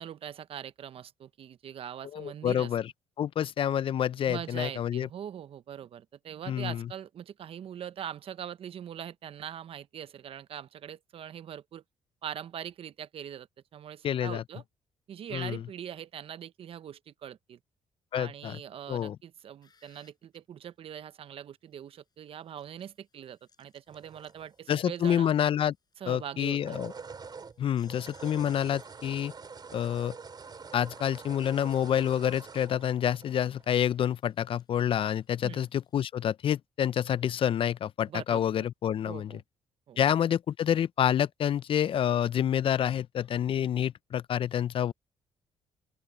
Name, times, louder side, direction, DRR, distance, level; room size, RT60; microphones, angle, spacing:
voice 1, 0.0-2.7 4.3-11.8 12.2-13.5 13.7-14.6 15.1-17.6 18.1-25.3 26.0-26.8 35.4-35.7 38.1-38.6 39.1-39.4 39.9-40.0, right 9 dB, 60° right, 1.0 m, -42 dB
voice 2, 2.1-2.9 3.2-5.1 6.5-6.9 14.0-14.4 15.3-15.6 18.1-18.6 18.9-19.2 24.7-25.7 26.1-26.9 27.6-29.3 29.7-30.1 30.7-39.3 40.0-44.9, left 9 dB, 55° left, 0.6 m, -28 dB
sound 1, 19.4-20.4 22.3-25.9 26.3-26.4 26.9-36.1, left 5 dB, 40° left, 7.5 m, -66 dB
sound 2, 23.9-24.9 26.4-33.9, right 5 dB, 40° right, 3.7 m, -46 dB
open air
supercardioid pair, 65°, 11 cm